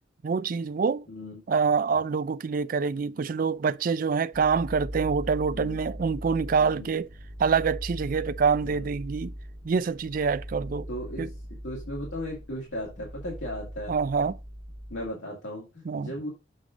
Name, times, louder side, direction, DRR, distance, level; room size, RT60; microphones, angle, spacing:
voice 1, 0.2-1.0 1.5-7.1 7.4-9.3 9.6-10.9 11.2-11.3 13.9-14.3 15.9-16.1, right 5 dB, 45° right, 0.4 m, -26 dB
voice 2, 1.1-1.4 5.5-5.8 6.6-6.9 8.6-8.8 10.9-11.3 11.6-14.0 14.9-16.3, equal, 85° left, 2.1 m, -36 dB
sound 1, 4.3-15.1, equal, 15° right, 1.6 m, -40 dB
7.7 x 3.7 x 5.0 m
head